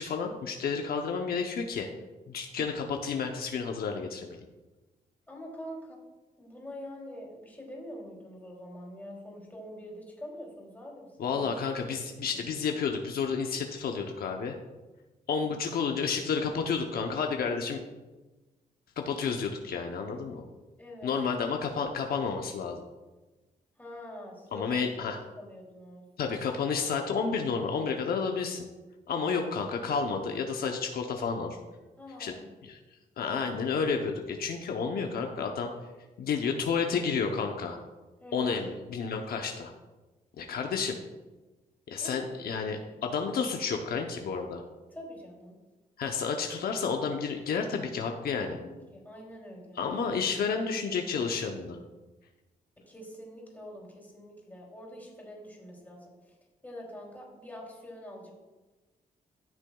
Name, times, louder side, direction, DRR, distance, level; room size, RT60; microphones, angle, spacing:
voice 1, 0.0-1.9 2.3-4.4 11.2-14.6 15.3-17.8 19.0-20.4 21.0-22.8 24.5-25.2 26.2-28.6 29.1-31.6 32.2-32.3 32.6-32.8 33.2-35.7 36.2-37.8 38.3-39.7 40.4-40.9 41.9-44.6 46.0-48.6 49.8-51.8, left 5 dB, 75° left, 3 dB, 0.8 m, -31 dB
voice 2, 5.3-6.0 6.4-11.4 12.3-12.4 15.3-15.5 20.8-21.2 23.8-24.8 25.4-26.0 29.2-29.5 32.0-32.5 38.2-38.6 42.0-42.1 44.9-45.6 48.4-49.8 50.5-50.7 52.9-56.1 56.6-58.3, equal, 10° left, -3 dB, 2.9 m, -45 dB
13.5 x 6.2 x 2.3 m, 1.2 s
cardioid pair, 100°, 16 cm